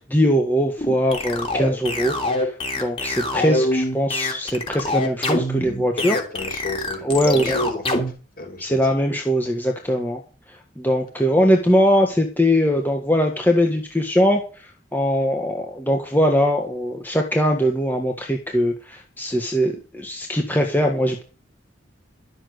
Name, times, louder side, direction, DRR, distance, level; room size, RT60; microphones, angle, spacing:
voice 1, 0.1-2.5 2.8-6.2 7.0-7.6 8.6-10.2 10.8-14.4 14.9-21.2, equal, 10° left, 2 dB, 1.5 m, -21 dB
sound 1, 0.8-8.1, left 1 dB, 30° left, 3.1 m, -24 dB
voice 2, 6.1-7.8 8.4-8.8 20.8-20.9, left 1 dB, 50° left, 3 dB, 5.3 m, -30 dB
12.5 x 7.3 x 8.1 m, 0.36 s
head